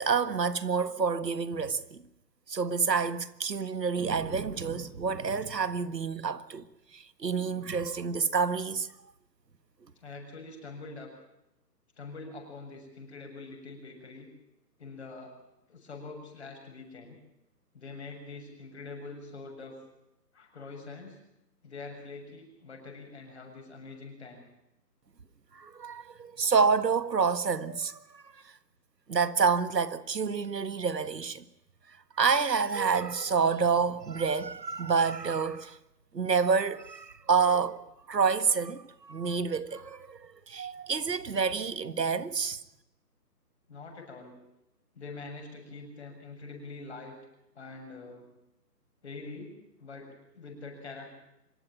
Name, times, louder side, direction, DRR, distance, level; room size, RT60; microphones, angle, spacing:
voice 1, 0.0-2.0 2.5-6.6 6.9-8.9 25.5-28.2 29.1-31.4 32.2-35.8 36.1-37.8 38.1-42.6, right 5 dB, 75° right, 1.7 m, -28 dB
voice 2, 10.0-11.1 12.0-14.3 14.8-15.4 15.7-17.2 17.7-19.8 20.3-21.2 21.6-24.4 43.7-44.4 44.9-47.2 47.5-48.3 49.0-51.1, left 3 dB, 40° left, 7.2 m, -44 dB
26.0 x 13.5 x 9.2 m
hypercardioid pair, 175°, 50 cm